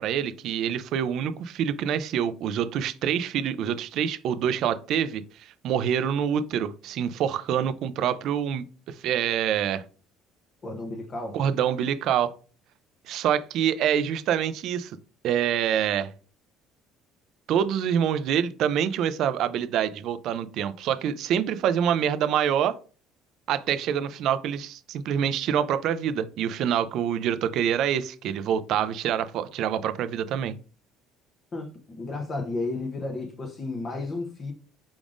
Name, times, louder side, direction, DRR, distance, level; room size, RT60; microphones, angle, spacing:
voice 1, 0.0-9.8 11.3-12.3 13.1-15.0 15.2-16.1 17.5-22.8 23.5-30.5, right 9 dB, 55° right, 0.4 m, -26 dB
voice 2, 10.6-11.4 31.5-34.5, left 2 dB, 25° left, 0.7 m, -33 dB
4.9 x 3.5 x 2.4 m
cardioid pair, 150°, 0 cm